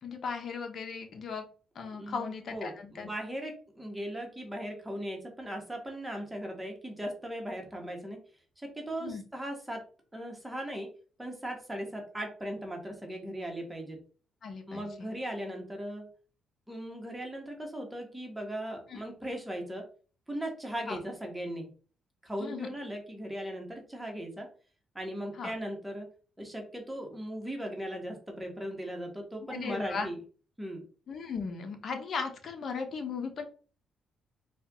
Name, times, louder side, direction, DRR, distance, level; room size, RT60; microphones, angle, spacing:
voice 1, 0.0-1.4 1.7-3.1 9.0-9.2 14.4-15.1 18.9-19.0 20.9-21.0 22.4-22.7 25.4-25.5 29.4-30.1 31.1-33.4, left 5 dB, 55° left, 5 dB, 0.9 m, -37 dB
voice 2, 1.9-8.2 8.6-9.8 10.1-10.9 11.2-14.0 14.7-16.1 16.7-19.8 20.3-21.7 22.2-24.5 24.9-26.1 26.4-30.2 30.6-30.8, equal, 10° right, 2 dB, 1.3 m, -38 dB
4.4 x 2.5 x 3.5 m, 0.38 s
cardioid pair, 90°, 0 cm